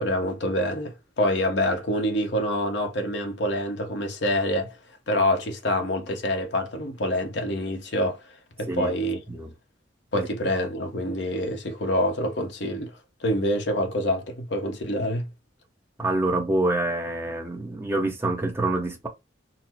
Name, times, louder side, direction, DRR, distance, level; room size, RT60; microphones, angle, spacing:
voice 1, 0.0-4.8 5.1-8.2 8.6-9.2 10.1-12.9 13.2-15.3, left 1 dB, 70° left, 0.9 m, -26 dB
voice 2, 16.0-19.1, right 2 dB, 15° right, 0.7 m, -26 dB
4.1 x 2.0 x 4.3 m
head